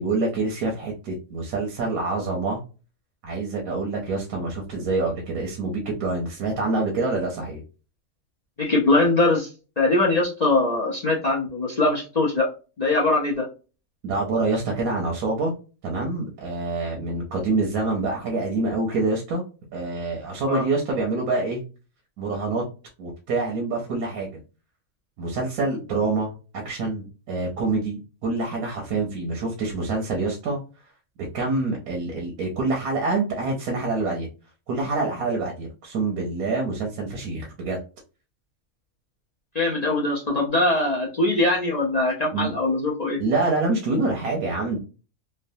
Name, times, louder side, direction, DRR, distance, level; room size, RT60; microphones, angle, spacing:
voice 1, 0.0-2.6 3.2-7.6 14.0-15.5 15.8-19.4 19.7-21.6 22.2-22.6 23.0-24.3 25.2-30.6 31.3-34.3 34.7-37.8 42.3-42.5 43.2-44.8, right 3 dB, 90° right, 0 dB, 1.2 m, -26 dB
voice 2, 8.6-9.5 9.8-12.5 12.8-13.5 20.5-20.6 39.5-43.2, left 2 dB, 55° left, -3 dB, 0.4 m, -22 dB
3.2 x 2.1 x 2.6 m, 0.34 s
omnidirectional pair, 1.5 m